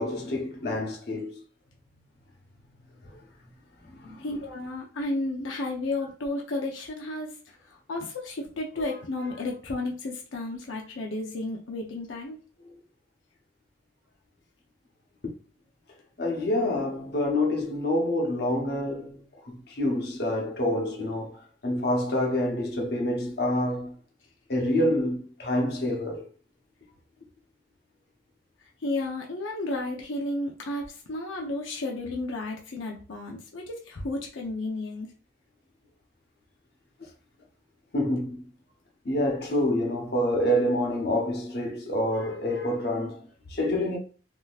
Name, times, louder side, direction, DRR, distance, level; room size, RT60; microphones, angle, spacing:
voice 1, 0.0-1.4 3.9-4.2 8.8-8.9 16.2-23.9 24.5-26.2 37.0-37.1 37.9-38.4 39.0-44.0, left 1 dB, 55° left, 0.9 m, -27 dB
voice 2, 4.2-12.4 25.7-25.8 28.8-35.1, left 2 dB, 90° left, 0.7 m, -33 dB
3.6 x 2.8 x 2.4 m
head